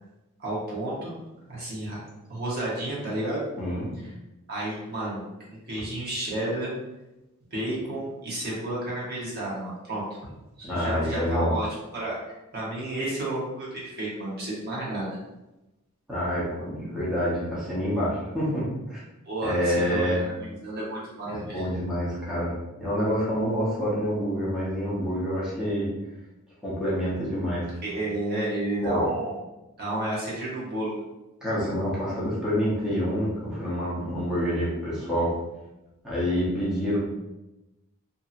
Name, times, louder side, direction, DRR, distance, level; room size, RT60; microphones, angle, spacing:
voice 1, 0.4-1.2 1.5-2.0 2.3-3.5 4.5-5.2 5.5-6.7 7.5-10.0 10.6-11.7 11.9-12.1 12.5-15.2 19.2-21.7 27.8-29.4 29.8-30.9, right 1 dB, 50° right, -6 dB, 1.0 m, -31 dB
voice 2, 3.6-3.9 10.6-11.5 16.1-19.0 19.4-20.2 21.3-25.9 26.6-27.7 28.8-29.1 31.4-35.3 36.0-37.0, equal, 5° right, -10 dB, 0.8 m, -27 dB
2.7 x 2.7 x 2.5 m, 0.98 s
head